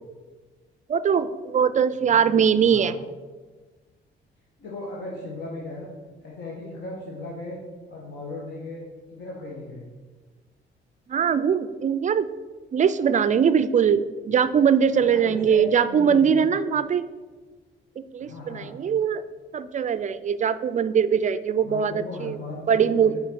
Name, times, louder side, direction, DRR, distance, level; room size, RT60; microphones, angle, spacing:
voice 1, 0.9-3.0 11.1-12.3 12.7-17.1 18.0-19.2 19.5-22.4 22.7-23.2, right 7 dB, 40° right, 14 dB, 0.4 m, -21 dB
voice 2, 2.6-2.9 4.6-5.9 6.2-7.6 7.9-8.8 9.1-9.8 14.9-16.4 18.2-18.8 21.6-23.2, left 2 dB, 65° left, -4 dB, 1.4 m, -37 dB
5.7 x 4.4 x 5.9 m, 1.4 s
cardioid pair, 90°, 20 cm